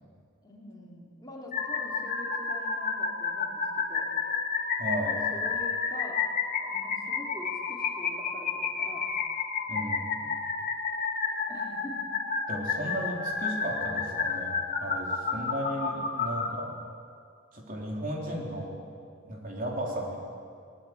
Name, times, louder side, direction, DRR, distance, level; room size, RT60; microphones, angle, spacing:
voice 1, 0.4-4.1 5.3-6.2 6.6-9.1 11.5-12.1, equal, 20° left, -3 dB, 3.6 m, -45 dB
sound 1, 1.5-16.5, left 5 dB, 40° left, 2.1 m, -31 dB
voice 2, 4.8-5.2 9.7-10.3 12.5-16.8 17.5-18.8 19.2-20.2, equal, 40° right, -1 dB, 3.7 m, -35 dB
21.5 x 20.0 x 9.5 m, 2.3 s
head